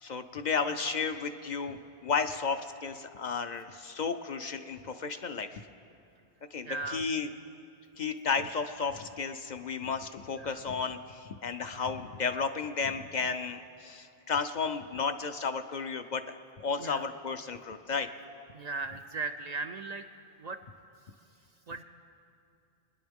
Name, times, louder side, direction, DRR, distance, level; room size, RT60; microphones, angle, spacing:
voice 1, 0.0-5.7 6.5-7.3 8.0-18.1, left 5 dB, 55° left, 8 dB, 0.6 m, -33 dB
voice 2, 6.6-7.0 10.4-10.6 16.8-17.1 18.5-20.1 20.4-20.6 21.7-21.8, right 3 dB, 55° right, 7 dB, 0.5 m, -37 dB
24.0 x 10.0 x 3.5 m, 2.6 s
omnidirectional pair, 1.0 m